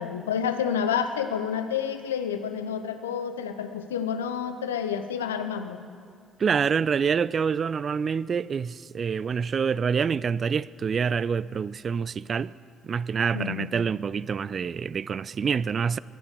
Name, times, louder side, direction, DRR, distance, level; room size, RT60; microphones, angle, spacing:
voice 1, 0.0-5.8 13.3-13.7, left 7 dB, 80° left, 0.7 m, -29 dB
voice 2, 6.4-12.5 12.8-16.0, right 6 dB, 40° right, 0.3 m, -26 dB
21.5 x 9.7 x 6.8 m
figure-of-eight pair, 50°, 0 cm